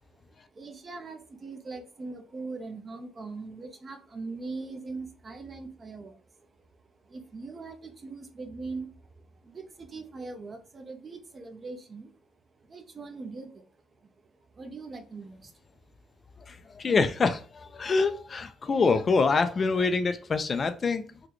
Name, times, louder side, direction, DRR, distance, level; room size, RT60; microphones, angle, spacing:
voice 1, 0.1-12.1 12.5-15.6 16.0-16.1, right 3 dB, 30° right, 6 dB, 0.6 m, -41 dB
voice 2, 16.5-21.0, left 4 dB, 35° left, 9 dB, 0.4 m, -25 dB
3.9 x 2.2 x 3.1 m, 0.38 s
cardioid pair, 120°, 0 cm